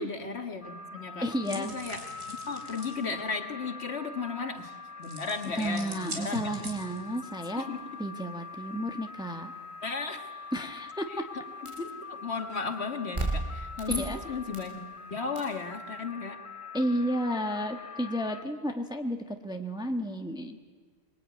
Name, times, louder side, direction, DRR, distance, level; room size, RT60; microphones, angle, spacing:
voice 1, 0.0-6.5 7.6-7.8 9.8-10.3 11.1-14.8 15.1-16.4, left 4 dB, 50° left, 6 dB, 1.9 m, -35 dB
sound 1, 0.6-18.4, left 4 dB, 25° left, 0.9 m, -44 dB
voice 2, 1.2-1.8 5.5-7.6 8.0-9.5 10.5-11.3 13.9-14.2 16.7-20.6, equal, 5° right, 5 dB, 1.2 m, -32 dB
sound 2, 1.4-3.0 5.0-7.2, right 2 dB, 65° right, 4.3 m, -42 dB
sound 3, 11.6-11.9 13.1-14.8 15.3-15.6, right 2 dB, 25° right, 0.9 m, -34 dB
25.0 x 22.0 x 9.3 m, 1.5 s
omnidirectional pair, 1.4 m